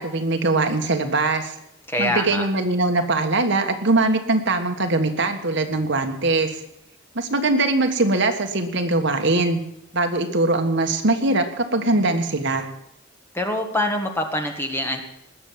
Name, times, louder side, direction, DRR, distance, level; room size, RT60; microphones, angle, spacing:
voice 1, 0.0-1.5 2.0-6.6 7.1-9.6 9.9-12.7, right 2 dB, 60° right, 6 dB, 1.5 m, -21 dB
voice 2, 1.9-2.4 13.3-15.0, left 1 dB, 10° left, 4 dB, 1.7 m, -24 dB
19.5 x 7.0 x 7.5 m, 0.81 s
head